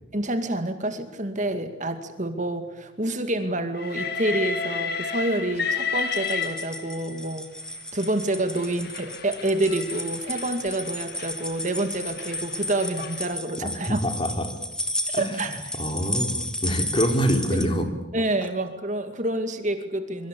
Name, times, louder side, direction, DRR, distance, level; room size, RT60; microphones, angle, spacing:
voice 1, 0.1-7.5 7.9-14.0 15.1-15.6 18.1-20.3, right 1 dB, 40° right, 7 dB, 2.3 m, -28 dB
Train, 3.8-7.2 8.0-13.3, left 5 dB, 50° left, 2.2 m, -32 dB
sound 1, 6.0-17.6, left 1 dB, 5° left, 2.1 m, -33 dB
voice 2, 13.6-14.5 15.1-17.9, equal, 25° left, 5 dB, 3.6 m, -26 dB
25.5 x 24.0 x 8.5 m, 0.99 s
head